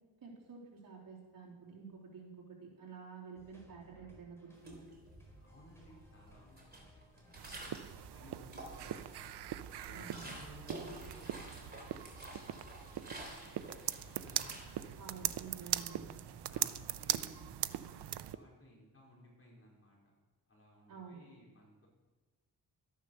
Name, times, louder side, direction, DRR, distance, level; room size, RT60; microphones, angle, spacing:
voice 1, 0.2-4.9 9.9-10.3 15.0-16.1 20.9-21.2, right 5 dB, 55° right, -4 dB, 3.6 m, -50 dB
sound 1, 3.3-16.7, equal, 5° left, 4.1 m, -62 dB
sound 2, 4.6-5.4 5.8-8.0 8.4-9.2 9.6-15.3, right 1 dB, 25° right, 3.2 m, -50 dB
voice 2, 5.4-9.3 9.7-11.9 12.2-15.0 15.7-16.0 16.5-20.0 20.5-21.9, left 1 dB, 35° left, -3 dB, 4.8 m, -60 dB
sound 3, 7.3-18.4, right 12 dB, 80° right, 0.6 m, -41 dB
13.0 x 10.0 x 6.5 m, 1.3 s
wide cardioid pair, 130°, 39 cm